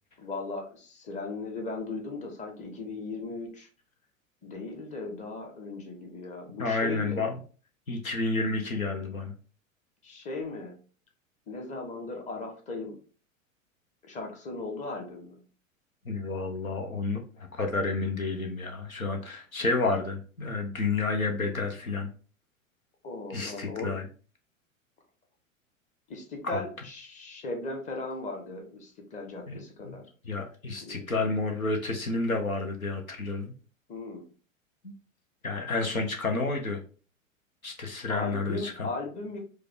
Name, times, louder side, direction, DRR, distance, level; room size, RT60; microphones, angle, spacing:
voice 1, 0.2-3.7 4.4-7.2 10.0-10.7 11.5-13.0 14.1-15.4 23.0-23.9 26.1-30.1 30.8-31.1 33.9-34.2 38.1-39.4, left 3 dB, 20° left, 3 dB, 0.9 m, -37 dB
voice 2, 6.6-7.4 7.9-9.3 16.0-22.1 23.3-24.1 26.5-26.6 29.5-33.5 34.8-34.9 35.4-36.8 37.6-38.9, left 3 dB, 90° left, 4 dB, 0.8 m, -30 dB
4.7 x 2.3 x 3.6 m, 0.39 s
figure-of-eight pair, 90°, 41 cm